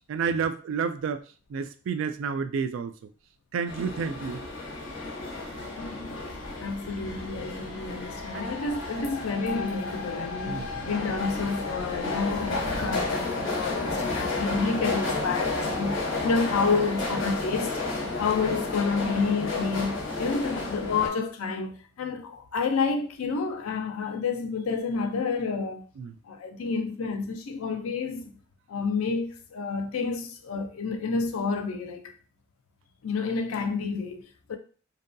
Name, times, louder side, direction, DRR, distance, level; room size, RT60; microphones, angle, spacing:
voice 1, 0.1-1.2 1.5-2.9 3.5-4.5 8.3-8.4 8.9-9.1 10.5-10.7 12.8-12.9 26.0-26.1, right 6 dB, 65° right, 0.3 m, -30 dB
sound 1, 3.7-21.1, left 3 dB, 60° left, 0.8 m, -32 dB
voice 2, 5.8-6.2 6.6-17.8 18.2-25.8 26.2-28.3 28.7-32.1 33.0-34.6, left 4 dB, 90° left, 0.4 m, -29 dB
2.7 x 2.2 x 2.5 m
head